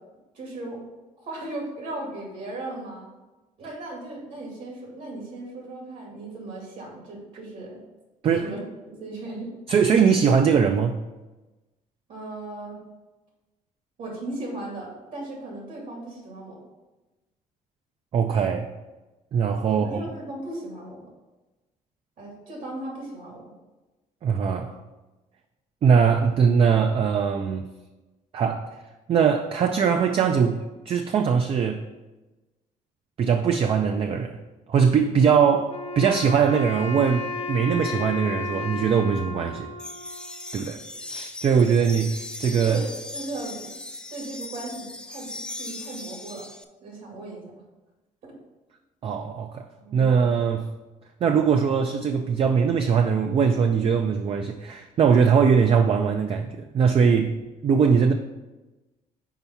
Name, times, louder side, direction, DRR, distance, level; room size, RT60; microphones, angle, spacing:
voice 1, 0.3-0.8 1.2-3.1 3.6-7.8 8.4-9.5 12.1-12.8 14.0-16.6 19.7-21.1 22.2-23.4 42.6-43.7 44.1-46.5 46.8-47.5 48.2-48.3 49.8-50.1, right 2 dB, 70° right, -2 dB, 2.2 m, -36 dB
voice 2, 9.7-11.0 18.1-18.7 19.3-20.0 24.2-24.8 25.8-27.7 28.3-28.7 29.1-31.8 33.2-34.4 34.7-39.7 40.5-42.8 49.0-49.7 49.9-50.7 51.2-57.3 57.6-58.1, right 6 dB, 40° right, 6 dB, 0.4 m, -21 dB
Wind instrument woodwind instrument, 35.7-40.9, left 2 dB, 50° left, 0.9 m, -34 dB
sound 1, 39.8-46.6, left 2 dB, 5° left, 0.5 m, -38 dB
5.6 x 4.5 x 5.7 m, 1.1 s
cardioid pair, 135°, 14 cm